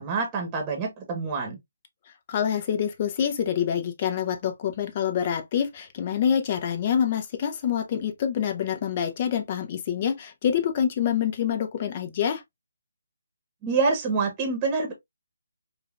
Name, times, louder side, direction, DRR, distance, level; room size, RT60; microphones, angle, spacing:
voice 1, 0.0-1.6 13.6-14.9, right 4 dB, 20° right, 1.1 m, -26 dB
voice 2, 2.3-12.4, left 8 dB, 35° left, 0.7 m, -26 dB
4.8 x 2.4 x 2.4 m
figure-of-eight pair, 150°, 0 cm